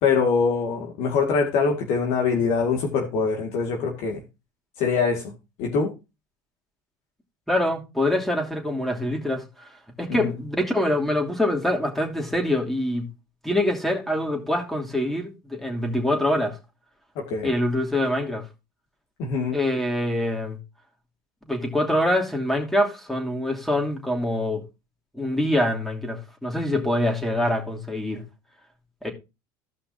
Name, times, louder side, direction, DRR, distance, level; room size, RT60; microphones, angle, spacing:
voice 1, 0.0-4.2 4.8-5.3 5.6-5.9 10.2-10.3 17.2-17.5 19.2-19.6, left 5 dB, 65° left, 2.1 m, -23 dB
voice 2, 7.5-9.7 10.0-13.1 13.4-16.6 17.4-18.4 19.5-20.6 21.5-24.6 25.1-28.2 29.0-29.1, left 1 dB, ahead, 2.8 m, -25 dB
16.0 x 5.6 x 2.7 m
supercardioid pair, 95°, 11 cm